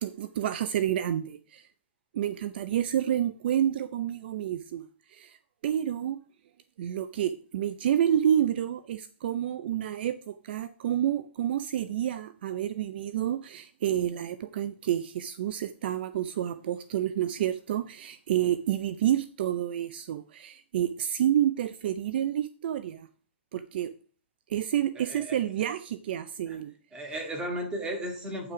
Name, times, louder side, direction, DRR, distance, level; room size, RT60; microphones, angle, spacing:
voice 1, 0.0-1.6 2.1-4.8 5.6-6.2 6.8-23.1 23.5-23.9 24.5-26.7, right 10 dB, 55° right, 0.6 m, -29 dB
voice 2, 25.0-25.4 26.5-26.6 26.9-28.5, right 1 dB, 15° right, 2.3 m, -35 dB
9.5 x 5.9 x 4.9 m
hypercardioid pair, 145°, 6 cm